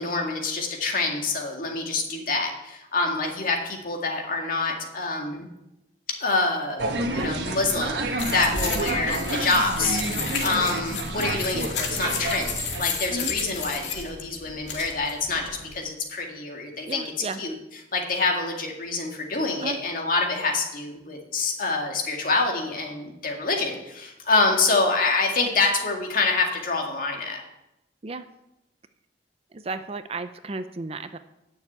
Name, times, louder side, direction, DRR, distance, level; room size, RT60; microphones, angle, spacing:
voice 1, 0.0-5.5 6.1-10.0 10.4-17.0 17.4-17.5 17.9-27.4, left 3 dB, 50° left, 1 dB, 2.1 m, -26 dB
sound 1, 6.8-12.9, right 2 dB, 70° right, 1.3 m, -29 dB
sound 2, 8.2-15.7, left 5 dB, 85° left, 2.1 m, -33 dB
voice 2, 16.9-17.4 19.6-19.8 28.0-28.3 29.5-31.2, right 3 dB, 35° right, 10 dB, 0.5 m, -33 dB
10.0 x 6.9 x 8.0 m, 0.90 s
head